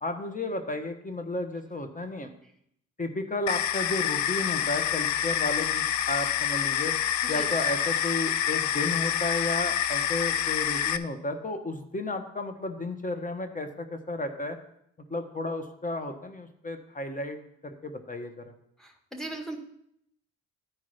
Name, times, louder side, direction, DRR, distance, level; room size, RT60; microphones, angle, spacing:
voice 1, 0.0-2.3 3.0-6.9 7.3-14.6 15.1-17.4 17.6-18.4, left 2 dB, 25° left, 6 dB, 1.2 m, -33 dB
sound 1, 3.5-11.0, left 10 dB, 55° left, 0.5 m, -27 dB
voice 2, 18.8-19.6, right 2 dB, ahead, 2 dB, 1.7 m, -38 dB
12.5 x 4.6 x 4.3 m, 0.73 s
hypercardioid pair, 45°, 35 cm